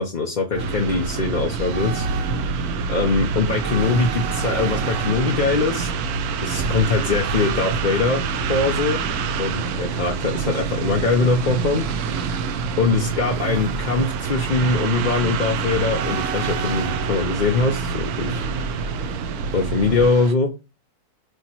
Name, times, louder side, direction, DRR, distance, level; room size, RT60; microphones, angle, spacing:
voice 1, 0.0-2.1 2.9-5.9 6.4-9.0 9.4-11.8 12.8-18.5 19.5-20.5, left 3 dB, 40° left, 1 dB, 0.7 m, -22 dB
sound 1, 0.5-20.1, right 4 dB, 60° right, 1.0 m, -27 dB
sound 2, 0.6-20.3, right 9 dB, 75° right, 1.2 m, -31 dB
8.0 x 3.0 x 4.4 m, 0.28 s
omnidirectional pair, 1.6 m